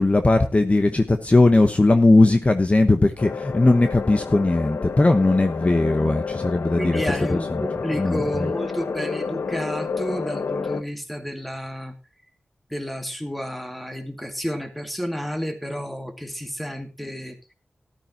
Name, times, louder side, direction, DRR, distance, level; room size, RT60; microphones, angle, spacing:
voice 1, 0.0-7.0 7.3-7.6 8.0-8.5, left 2 dB, 30° left, 7 dB, 1.1 m, -18 dB
sound 1, 3.2-10.8, left 5 dB, 75° left, 0.9 m, -30 dB
voice 2, 6.8-12.0 12.7-17.4, equal, ahead, 6 dB, 2.2 m, -31 dB
14.0 x 12.0 x 2.9 m, 0.28 s
cardioid pair, 55°, 4 cm